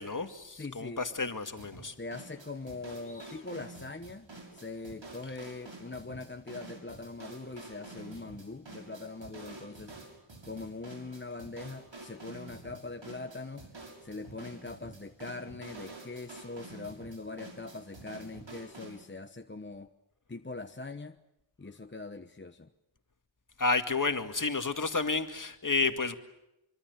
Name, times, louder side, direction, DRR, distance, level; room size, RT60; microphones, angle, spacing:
voice 1, 0.0-1.9 23.6-26.2, left 4 dB, 45° left, 2.2 m, -31 dB
voice 2, 0.6-1.4 2.0-9.9 10.4-13.7 14.0-19.9 20.3-21.2 21.6-22.7, left 3 dB, 25° left, 1.0 m, -42 dB
sound 1, 1.6-19.0, right 2 dB, 75° right, 6.7 m, -49 dB
25.0 x 25.0 x 8.1 m
wide cardioid pair, 85°, 45 cm